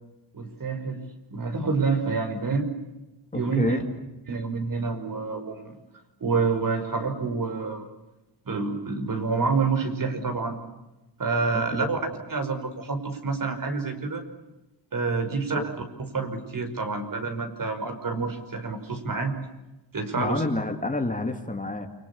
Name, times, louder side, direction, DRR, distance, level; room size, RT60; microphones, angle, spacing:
voice 1, 0.3-1.0 1.3-2.7 3.3-3.8 4.3-5.8 6.2-7.8 8.5-10.6 11.2-12.0 12.3-14.2 14.9-15.6 16.1-19.3 19.9-20.4, right 4 dB, 45° right, 6 dB, 5.6 m, -27 dB
voice 2, 3.3-3.8 11.5-12.0 15.3-15.7 20.1-21.9, left 2 dB, 15° left, 5 dB, 2.5 m, -29 dB
29.0 x 26.0 x 7.1 m, 1.0 s
wide cardioid pair, 115°, 44 cm